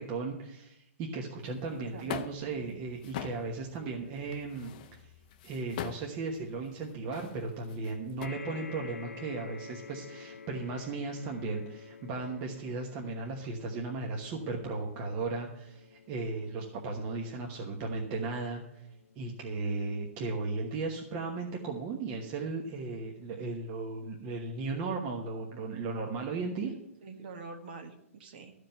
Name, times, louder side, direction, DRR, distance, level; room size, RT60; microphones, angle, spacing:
voice 1, 0.0-5.1 5.4-18.6 19.2-26.7, right 3 dB, 25° right, 0 dB, 1.2 m, -36 dB
sound 1, 1.4-8.3, left 9 dB, 35° left, 0.8 m, -44 dB
voice 2, 1.7-2.1 2.6-2.8 19.4-19.6 27.0-28.5, right 3 dB, 40° right, 6 dB, 1.4 m, -46 dB
sound 2, 8.2-22.8 23.5-23.6 23.9-24.0, left 5 dB, 90° left, 0.9 m, -50 dB
13.5 x 5.1 x 8.8 m, 0.79 s
hypercardioid pair, 170°, 8 cm